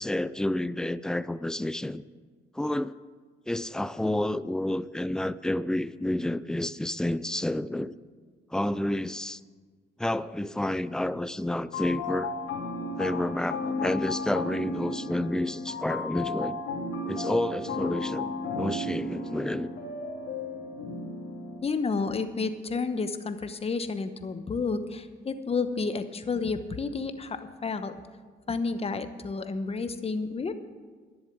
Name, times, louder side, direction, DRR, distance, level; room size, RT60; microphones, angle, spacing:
voice 1, 0.0-2.0 2.5-2.9 3.5-8.0 8.5-9.4 10.0-12.3 13.0-16.6 17.1-19.7, left 1 dB, 5° left, 0.4 m, -30 dB
sound 1, 11.7-21.6, left 2 dB, 80° left, 2.9 m, -34 dB
voice 2, 21.6-28.1 28.5-30.5, left 4 dB, 30° left, 0.9 m, -31 dB
11.0 x 7.2 x 8.6 m
cardioid pair, 90°, 20 cm